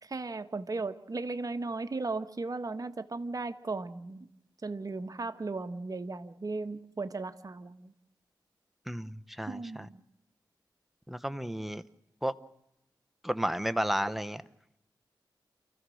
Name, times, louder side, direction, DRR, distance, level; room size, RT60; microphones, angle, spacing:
voice 1, 0.0-4.3 4.6-7.9 9.5-10.0, right 3 dB, 45° right, 1.3 m, -36 dB
voice 2, 8.9-9.9 11.1-11.8 12.2-12.3 13.2-14.4, equal, ahead, 0.9 m, -32 dB
29.0 x 14.5 x 6.4 m
cardioid pair, 65°, 8 cm